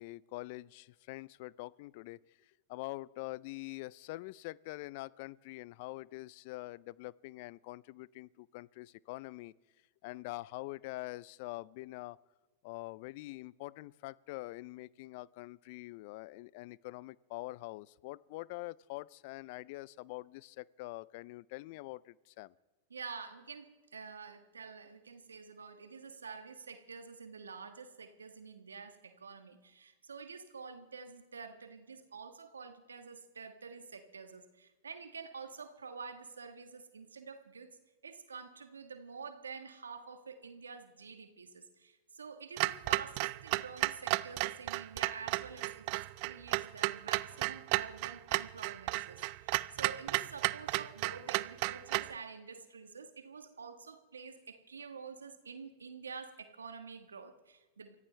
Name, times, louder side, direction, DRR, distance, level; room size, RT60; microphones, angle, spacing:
voice 1, 0.0-2.2 2.7-9.5 10.0-12.2 12.6-22.5, left 20 dB, 60° left, 23 dB, 0.4 m, -45 dB
voice 2, 22.9-37.7 38.0-57.9, right 5 dB, 90° right, 9 dB, 1.3 m, -48 dB
Clock, 42.6-52.2, right 22 dB, 55° right, 0.4 m, -34 dB
24.5 x 15.5 x 3.2 m, 1.2 s
hypercardioid pair, 100°, 0 cm